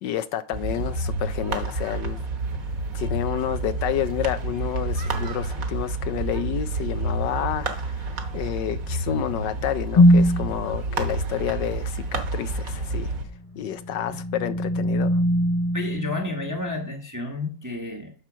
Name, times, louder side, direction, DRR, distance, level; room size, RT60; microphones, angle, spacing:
voice 1, 0.0-2.2 2.9-13.1 13.5-15.2, left 11 dB, 75° left, 1.2 m, -29 dB
sound 1, 0.5-13.2, right 2 dB, 50° right, 1.6 m, -29 dB
sound 2, 9.9-10.5 13.4-16.9, equal, 30° left, 0.7 m, -21 dB
voice 2, 15.7-18.1, left 2 dB, 15° right, 0.9 m, -31 dB
9.0 x 4.4 x 6.1 m
omnidirectional pair, 2.0 m